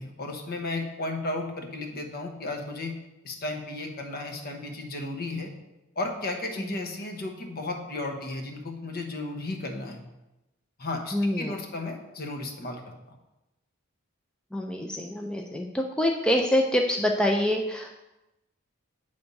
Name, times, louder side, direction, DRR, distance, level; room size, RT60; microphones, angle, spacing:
voice 1, 0.0-2.9 3.2-5.5 6.0-10.0 10.8-12.8, left 2 dB, 45° left, 3 dB, 0.9 m, -34 dB
voice 2, 11.1-11.6 14.5-17.9, left 1 dB, 5° left, 2 dB, 0.4 m, -26 dB
8.0 x 3.4 x 5.3 m, 0.99 s
head